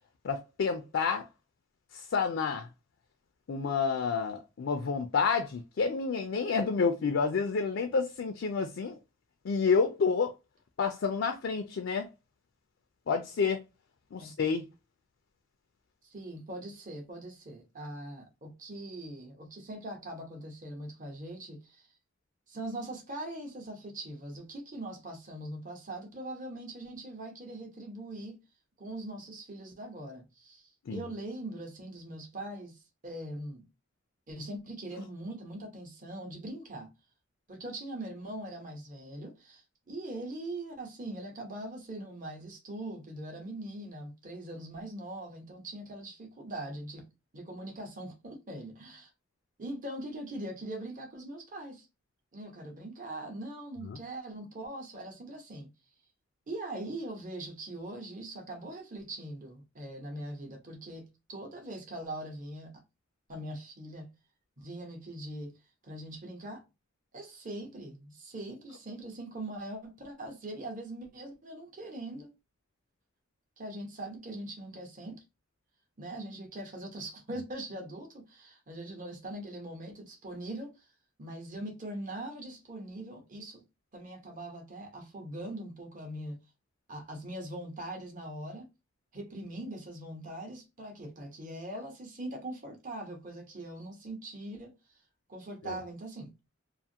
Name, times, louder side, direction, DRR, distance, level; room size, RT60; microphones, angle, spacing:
voice 1, 0.2-1.3 1.9-2.7 3.5-9.0 9.4-10.3 10.8-12.1 13.1-13.6 14.1-14.7 30.9-31.1 53.9-54.0 95.6-95.8, left 5 dB, 70° left, 0.4 m, -29 dB
voice 2, 16.0-21.9 22.5-28.4 28.8-33.7 34.3-36.9 37.5-47.1 47.3-49.1 49.6-51.9 52.3-55.7 56.5-62.8 63.3-64.1 64.6-65.5 65.8-66.6 67.1-72.3 73.6-75.2 76.0-80.8 81.2-83.6 83.9-86.4 86.9-88.7 89.1-94.8 95.3-96.3, right 1 dB, 40° right, 0.9 m, -41 dB
2.5 x 2.4 x 2.7 m
head